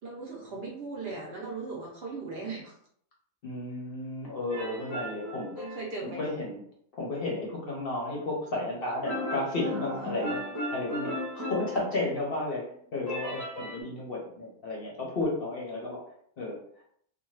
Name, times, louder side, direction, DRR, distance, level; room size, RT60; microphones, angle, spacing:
voice 1, 0.0-2.8 4.8-5.0 5.6-6.3 9.6-10.1, right 3 dB, 55° right, -2 dB, 0.8 m, -39 dB
voice 2, 3.4-5.6 6.0-6.6 6.9-16.0 16.4-16.6, left 2 dB, 55° left, -3 dB, 0.8 m, -33 dB
sound 1, 4.5-6.4 9.1-12.4 13.1-13.8, left 1 dB, 20° left, 0.7 m, -36 dB
2.5 x 2.1 x 3.1 m, 0.64 s
omnidirectional pair, 1.4 m